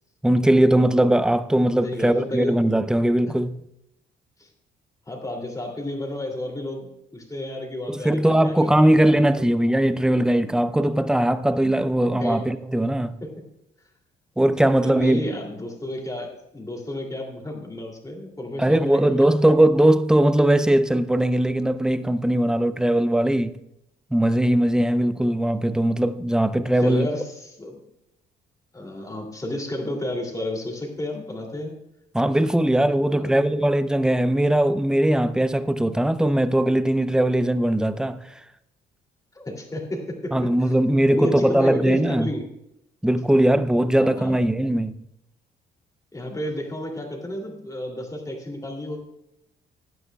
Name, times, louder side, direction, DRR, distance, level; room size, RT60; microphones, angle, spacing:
voice 1, 0.2-3.6 7.9-13.2 14.4-15.3 18.6-23.6 24.1-27.1 32.1-38.2 40.3-42.3 43.0-45.0, right 1 dB, 5° right, 0.5 m, -20 dB
voice 2, 1.8-2.6 3.3-3.4 4.4-4.5 5.1-9.3 12.1-12.4 13.2-13.3 14.6-19.5 26.8-27.8 28.7-31.8 33.0-33.4 39.3-40.8 41.1-42.4 44.0-44.4 46.1-49.0, left 1 dB, 15° left, 2.8 m, -32 dB
16.5 x 11.0 x 2.3 m
cardioid pair, 90°, 20 cm